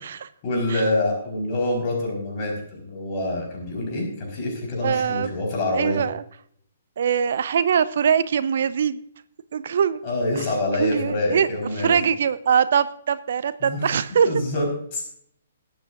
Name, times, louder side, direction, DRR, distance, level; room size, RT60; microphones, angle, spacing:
voice 1, 0.4-6.0 10.0-12.1 13.6-14.0 14.2-15.1, left 1 dB, 35° left, 1 dB, 4.5 m, -26 dB
voice 2, 4.8-5.3 5.7-6.2 7.0-9.0 9.5-10.0 10.8-11.5 11.8-14.3, right 7 dB, 55° right, 15 dB, 0.6 m, -22 dB
21.0 x 8.8 x 2.6 m, 0.65 s
figure-of-eight pair, 125°, 0 cm